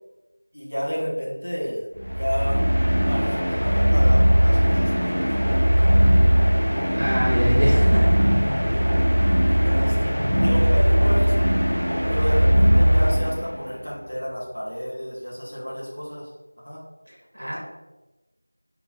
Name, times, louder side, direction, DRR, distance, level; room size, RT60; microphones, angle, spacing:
voice 1, 0.5-1.8 2.2-2.6 3.1-6.2 7.7-8.0 8.7-8.8 9.1-10.1 10.4-11.4 12.1-16.2 16.6-16.8, equal, 40° left, -5 dB, 1.1 m, -31 dB
sound 1, 2.0-13.7, equal, 75° left, 1.1 m, -19 dB
voice 2, 7.0-8.1 17.3-17.6, equal, 10° right, -6 dB, 0.5 m, -24 dB
3.9 x 2.2 x 4.1 m, 1.1 s
figure-of-eight pair, 180°, 0 cm